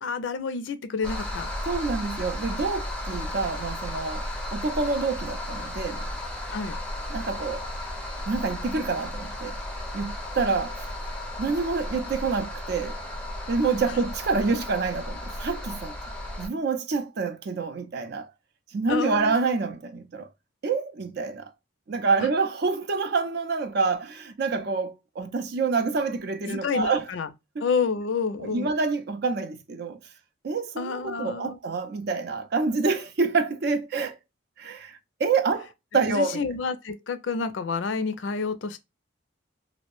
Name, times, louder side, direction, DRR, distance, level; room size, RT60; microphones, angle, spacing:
voice 1, 0.0-1.5 6.5-6.8 18.9-19.3 22.2-22.3 26.4-27.3 27.6-28.7 30.8-31.6 36.1-38.8, left 5 dB, 70° left, 0.4 m, -29 dB
sound 1, 1.0-16.5, left 1 dB, 5° left, 0.5 m, -34 dB
voice 2, 1.7-6.0 7.1-7.7 8.3-9.6 9.9-10.9 11.4-13.0 13.5-16.0 16.4-18.3 18.7-20.3 20.6-21.5 21.9-27.1 27.6-27.7 28.4-30.0 30.4-34.2 34.6-36.4, right 4 dB, 55° right, 0.5 m, -27 dB
2.6 x 2.0 x 3.0 m
head